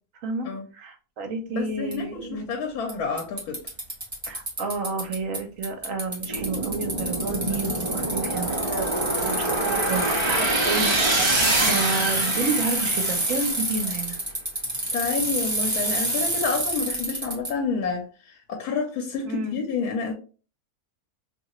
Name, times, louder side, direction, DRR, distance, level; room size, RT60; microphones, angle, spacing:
voice 1, 0.7-2.5 4.2-10.9 11.3-14.2 19.2-19.6, right 3 dB, 65° right, 1.0 m, -30 dB
voice 2, 1.5-3.6 11.6-11.7 14.9-20.1, left 5 dB, 85° left, 1.2 m, -29 dB
Bicycle, 1.9-2.0 2.9-3.0 3.2-5.4 5.6-17.5, right 1 dB, 15° right, 1.0 m, -28 dB
sound 1, 6.3-13.6, right 2 dB, 40° right, 1.2 m, -26 dB
2.8 x 2.8 x 3.0 m
omnidirectional pair, 1.6 m